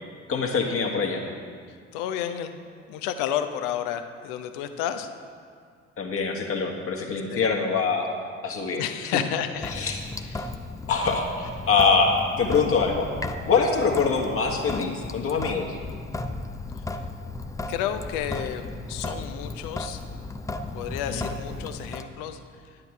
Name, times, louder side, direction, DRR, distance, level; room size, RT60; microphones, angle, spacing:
voice 1, 0.3-1.2 6.0-8.1 8.4-9.2 9.7-10.0 10.9-13.1 13.5-15.7 21.1-21.2, left 5 dB, 35° left, 1 dB, 1.6 m, -24 dB
voice 2, 1.7-5.1 7.3-7.5 8.8-9.9 10.3-10.5 16.9-17.0 17.7-20.0 20.7-22.4, left 9 dB, 55° left, 9 dB, 0.8 m, -31 dB
Sink (filling or washing) / Drip, 9.6-22.0, left 2 dB, 10° left, 0.5 m, -35 dB
10.5 x 9.7 x 4.6 m, 2.1 s
figure-of-eight pair, 55°, 37 cm